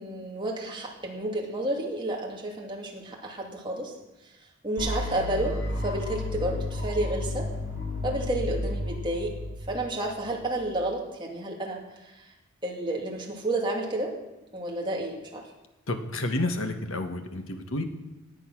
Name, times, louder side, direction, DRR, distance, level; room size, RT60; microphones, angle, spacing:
voice 1, 0.0-3.9 4.6-5.6 5.8-7.5 8.0-9.3 9.7-12.3 12.6-14.1 14.5-15.4, right 1 dB, 25° right, -1 dB, 2.6 m, -31 dB
sound 1, 4.8-10.7, left 2 dB, 60° left, 4.0 m, -33 dB
voice 2, 15.9-17.8, left 2 dB, 75° left, 6 dB, 1.6 m, -30 dB
18.0 x 9.5 x 6.2 m, 0.99 s
head